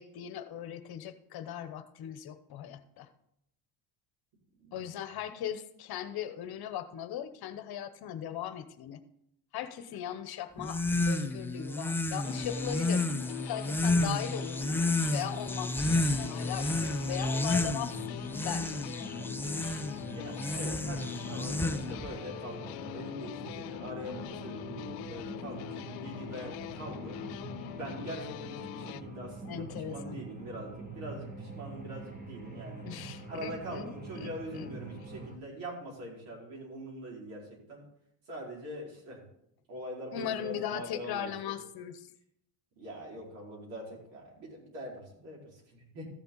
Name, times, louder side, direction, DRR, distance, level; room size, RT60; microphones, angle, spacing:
voice 1, 0.0-3.1 4.7-9.0 9.5-13.1 13.5-14.8 15.1-18.8 29.4-30.2 32.8-33.9 34.2-34.7 40.1-42.1, left 10 dB, 50° left, 11 dB, 1.0 m, -39 dB
sound 1, 10.6-22.1, left 2 dB, 5° left, 0.4 m, -31 dB
sound 2, 12.2-29.0, left 18 dB, 80° left, 0.6 m, -43 dB
sound 3, 17.9-35.4, right 3 dB, 20° right, 1.6 m, -45 dB
voice 2, 20.0-27.2 27.6-32.9 33.3-37.8 38.3-39.2 39.7-41.3 42.8-46.1, equal, 80° right, -3 dB, 4.8 m, -43 dB
14.0 x 7.0 x 4.0 m, 0.76 s
supercardioid pair, 105°, 46 cm